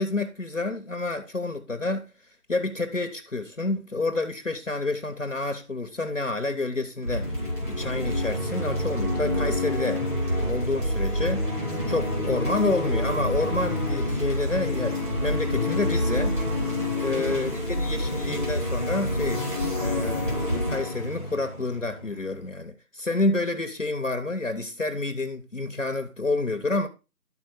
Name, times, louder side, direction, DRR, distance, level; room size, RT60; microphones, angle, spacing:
voice 1, 0.0-2.1 2.5-10.1 10.4-11.5 11.9-16.3 17.0-19.4 19.7-26.9, left 2 dB, 55° left, 0.8 m, -29 dB
sound 1, 7.0-22.4, left 1 dB, 30° right, 2.9 m, -27 dB
12.0 x 4.3 x 4.1 m
figure-of-eight pair, 175°, 47 cm